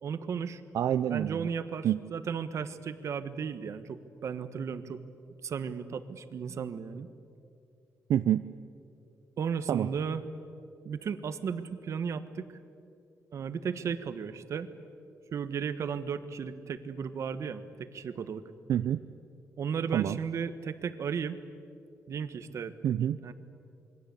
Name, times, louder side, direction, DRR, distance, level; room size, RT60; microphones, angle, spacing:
voice 1, 0.0-0.6 1.1-5.0 5.4-7.1 9.4-10.2 10.8-12.5 13.3-14.7 15.3-18.4 19.6-21.4 22.1-22.7 23.2-23.3, right 6 dB, 60° right, 11 dB, 1.4 m, -35 dB
voice 2, 0.7-1.5 1.8-2.0 8.1-8.4 9.7-9.9 18.7-19.0 19.9-20.2 22.8-23.2, right 10 dB, 85° right, 11 dB, 0.6 m, -27 dB
27.5 x 22.5 x 8.5 m, 2.6 s
wide cardioid pair, 140°, 6 cm